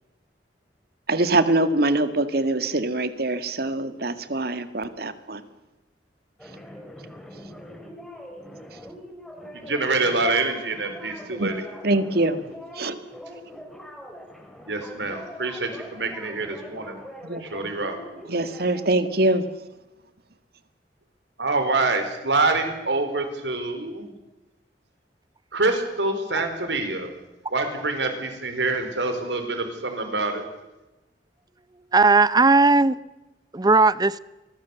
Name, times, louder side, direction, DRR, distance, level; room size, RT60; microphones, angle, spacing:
voice 1, 1.1-5.4 11.4-11.5 11.8-12.4 12.8-13.0 17.2-17.4 18.3-19.5, right 2 dB, 60° right, 1.8 m, -23 dB
sound 1, 6.4-18.8, equal, ahead, 3.9 m, -42 dB
voice 2, 9.5-11.6 14.6-17.0 17.4-18.0 21.4-24.1 25.5-27.1 27.5-30.5, right 3 dB, 90° right, 4.2 m, -26 dB
voice 3, 31.9-33.0 33.5-34.2, right 3 dB, 25° right, 0.7 m, -17 dB
26.0 x 20.5 x 7.1 m
head